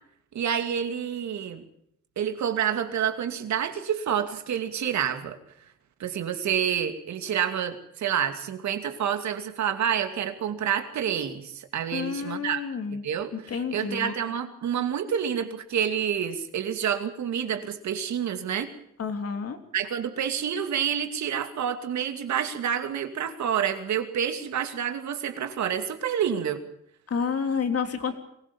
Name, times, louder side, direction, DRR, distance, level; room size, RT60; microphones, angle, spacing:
voice 1, 0.3-1.6 2.2-5.4 6.0-12.6 13.0-18.7 19.7-26.6, right 8 dB, 65° right, 7 dB, 2.6 m, -28 dB
voice 2, 11.9-13.0 13.3-14.1 19.0-19.6 27.1-28.2, left 6 dB, 50° left, 6 dB, 3.5 m, -29 dB
23.5 x 16.5 x 7.2 m, 0.73 s
cardioid pair, 90°, 30 cm